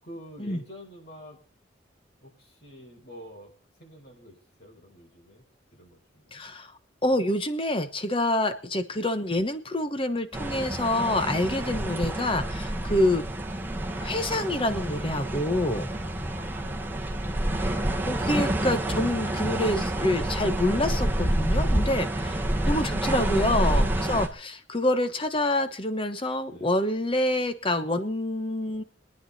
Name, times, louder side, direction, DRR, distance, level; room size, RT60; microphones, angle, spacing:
voice 1, 0.0-1.4 2.2-3.5 3.8-5.4 5.7-6.4 15.9-17.5 26.5-26.9, equal, 55° left, 1 dB, 5.0 m, -48 dB
voice 2, 6.3-6.7 7.0-13.2 13.9-15.9 18.1-28.8, left 1 dB, 30° left, 10 dB, 1.1 m, -27 dB
sound 1, 10.3-24.3, right 1 dB, 10° right, 1.4 m, -28 dB
23.0 x 9.7 x 4.2 m, 0.40 s
head